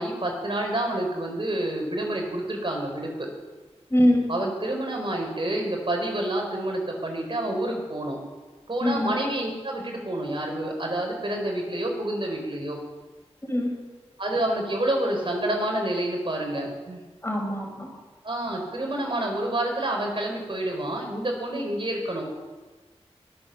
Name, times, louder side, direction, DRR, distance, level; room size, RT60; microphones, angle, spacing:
voice 1, 0.0-3.3 4.3-8.2 8.7-12.8 14.2-17.0 18.2-22.3, right 1 dB, 50° right, 1 dB, 4.0 m, -28 dB
voice 2, 3.9-4.2 8.8-9.1 13.5-13.7 17.2-17.9, left 1 dB, 25° left, 1 dB, 5.1 m, -23 dB
23.0 x 7.7 x 7.0 m, 1.3 s
wide cardioid pair, 55°, 11 cm